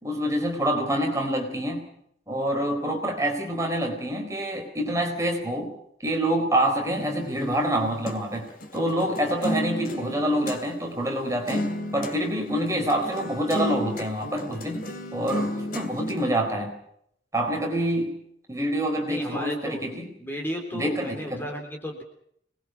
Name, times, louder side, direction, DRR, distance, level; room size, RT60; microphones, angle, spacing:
voice 1, 0.0-1.9 2.3-5.7 6.0-8.5 8.7-16.8 17.3-18.2 18.5-20.1 20.7-21.5, right 1 dB, 15° right, 3 dB, 4.1 m, -26 dB
sound 1, 6.9-10.6 11.0-11.1 11.5-12.2 12.5-16.3, equal, 50° left, 3.1 m, -33 dB
voice 2, 19.1-19.8 20.2-22.0, equal, 10° left, 2 dB, 3.5 m, -33 dB
26.0 x 21.0 x 5.8 m, 0.70 s
head